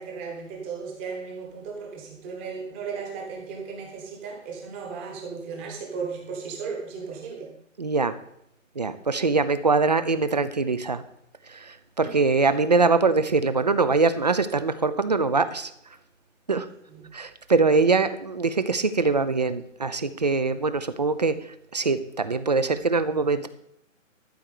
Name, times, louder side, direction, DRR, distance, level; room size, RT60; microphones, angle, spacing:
voice 1, 0.0-7.5 12.0-12.1 16.9-17.1, right 5 dB, 10° right, 1 dB, 1.1 m, -36 dB
voice 2, 7.8-8.2 8.8-11.0 11.5-15.7 16.5-16.7 17.1-23.5, right 4 dB, 35° right, 13 dB, 0.6 m, -23 dB
13.0 x 4.5 x 8.3 m, 0.76 s
hypercardioid pair, 170°, 40 cm